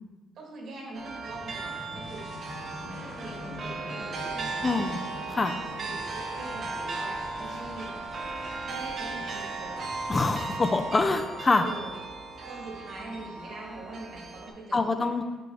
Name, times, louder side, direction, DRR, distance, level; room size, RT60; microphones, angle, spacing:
voice 1, 0.3-2.3 2.9-5.1 5.8-7.9 8.7-9.9 11.6-11.9 12.4-15.2, right 2 dB, 65° right, -1 dB, 1.4 m, -43 dB
sound 1, 0.9-14.5, right 3 dB, 50° right, 0.7 m, -36 dB
sound 2, 1.3-11.2, left 2 dB, 80° left, 1.3 m, -45 dB
voice 2, 4.6-5.0 5.3-5.5 10.1-11.7 14.7-15.2, left 3 dB, 25° left, 7 dB, 0.4 m, -25 dB
6.0 x 4.8 x 3.3 m, 1.2 s
cardioid pair, 105°, 0 cm